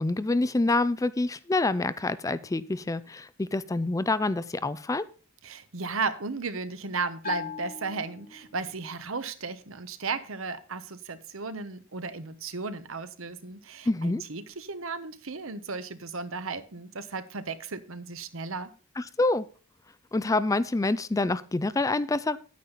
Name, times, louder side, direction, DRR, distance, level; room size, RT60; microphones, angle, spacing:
voice 1, 0.0-5.1 13.9-14.2 19.0-19.5 20.1-22.4, left 2 dB, 15° left, 16 dB, 0.4 m, -27 dB
voice 2, 5.4-18.7, right 4 dB, 70° right, 12 dB, 1.1 m, -35 dB
Bell, 7.2-8.9, left 7 dB, 40° left, 0.9 m, -40 dB
9.9 x 9.3 x 4.0 m, 0.38 s
head